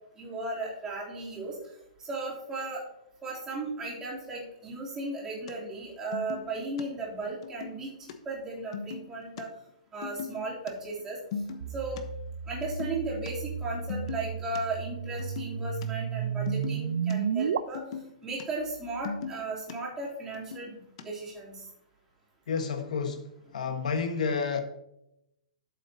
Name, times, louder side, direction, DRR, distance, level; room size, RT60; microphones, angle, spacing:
voice 1, 0.2-1.6 2.1-2.8 3.2-9.5 9.9-11.2 11.7-12.0 12.5-17.8 18.2-21.6, right 2 dB, 15° right, -5 dB, 3.2 m, -36 dB
sound 1, 5.5-5.6 5.8-5.9 6.1-6.8 7.4-8.1 8.4-8.5 8.7-9.4 10.0-10.7 11.0-12.0 12.5-13.3 13.6-13.7 13.9-14.6 15.0-15.9 16.1-17.1 17.6-18.4 18.7-19.7 20.2-21.0, left 6 dB, 50° left, 1.1 m, -39 dB
sound 2, 11.6-17.6, right 7 dB, 75° right, 0.6 m, -33 dB
voice 2, 22.5-23.3 23.5-24.6, left 5 dB, 80° left, 6 dB, 1.4 m, -30 dB
12.5 x 7.5 x 2.8 m, 0.81 s
hypercardioid pair, 160°, 4 cm